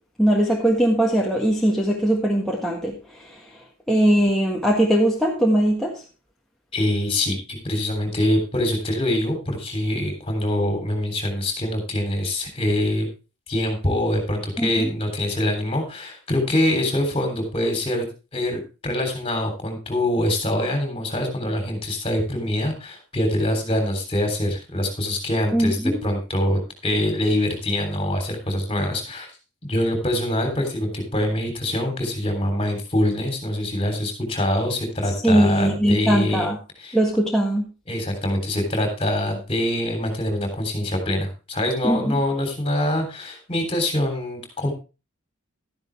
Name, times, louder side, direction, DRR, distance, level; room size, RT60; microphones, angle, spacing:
voice 1, 0.2-3.4 3.9-6.0 14.6-14.9 25.5-26.0 35.2-36.6 36.9-37.7 41.8-42.2, right 1 dB, ahead, -3 dB, 1.6 m, -20 dB
voice 2, 6.7-13.1 13.5-18.0 18.3-29.3 29.6-36.5 36.8-37.0 37.9-44.7, left 1 dB, 25° left, 4 dB, 3.4 m, -24 dB
12.5 x 10.5 x 3.4 m, 0.31 s
head